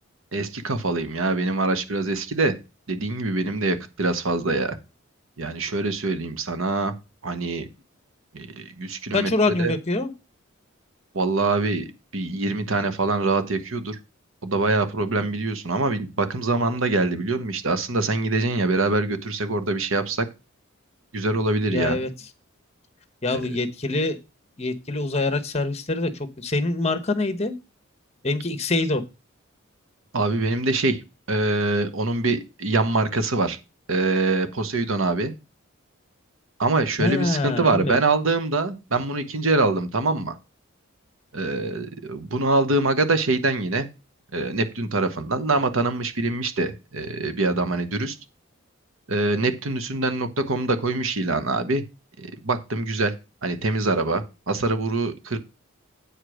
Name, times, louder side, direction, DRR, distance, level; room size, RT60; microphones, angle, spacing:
voice 1, 0.3-2.6 2.9-4.8 5.4-6.9 7.2-7.7 8.3-9.3 9.6-9.7 11.1-11.9 12.1-14.0 14.4-20.3 21.1-22.0 30.1-31.0 31.3-33.6 33.9-35.3 36.6-40.4 41.3-43.9 44.3-48.2 49.1-51.8 52.2-53.1 53.4-55.4, right 2 dB, 75° right, 1.1 m, -24 dB
voice 2, 9.1-10.1 21.7-22.1 23.2-24.2 24.6-26.1 26.4-27.5 28.2-29.0 37.0-38.0, left 2 dB, 30° left, 1.0 m, -24 dB
8.5 x 4.9 x 6.3 m
head